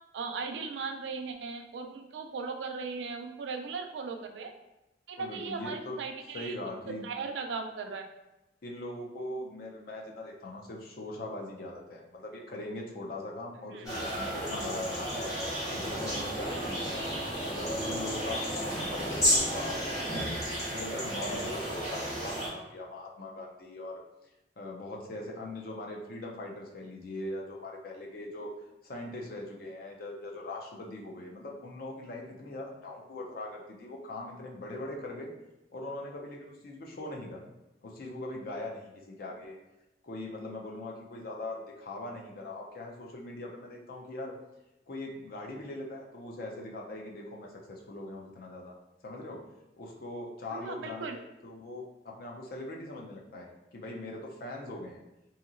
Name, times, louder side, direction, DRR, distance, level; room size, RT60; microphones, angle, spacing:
voice 1, 0.1-4.5 5.1-6.5 7.0-8.1 13.7-13.9 50.5-51.2, right 4 dB, 85° right, 4 dB, 0.4 m, -37 dB
voice 2, 5.2-6.0 6.3-7.1 8.6-15.3 15.7-20.3 20.7-24.0 24.6-28.5 28.8-35.3 35.7-37.5 37.8-39.6 40.0-44.4 44.9-48.8 49.0-49.4 49.8-55.0, left 1 dB, 55° left, 0 dB, 0.5 m, -41 dB
sound 1, 13.9-22.5, equal, 20° left, 1.0 m, -32 dB
2.8 x 2.7 x 2.5 m, 0.95 s
head